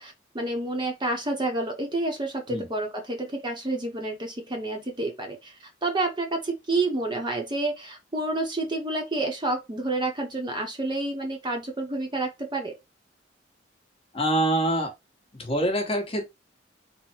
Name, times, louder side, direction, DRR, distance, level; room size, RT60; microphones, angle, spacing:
voice 1, 0.0-12.7, right 2 dB, 25° right, 0.8 m, -29 dB
voice 2, 14.1-14.9 15.3-16.3, right 1 dB, 30° left, 1.2 m, -25 dB
3.9 x 2.1 x 4.4 m
head